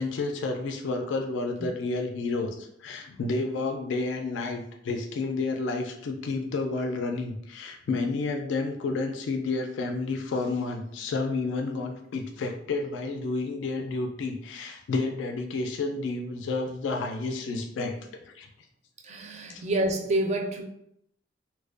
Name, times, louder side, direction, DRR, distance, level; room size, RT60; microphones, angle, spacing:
voice 1, 0.0-17.9 18.3-18.5 19.5-19.6, left 3 dB, 80° left, 4 dB, 0.3 m, -30 dB
voice 2, 19.0-20.6, right 1 dB, 35° right, 3 dB, 0.3 m, -28 dB
2.4 x 2.1 x 2.4 m, 0.73 s
head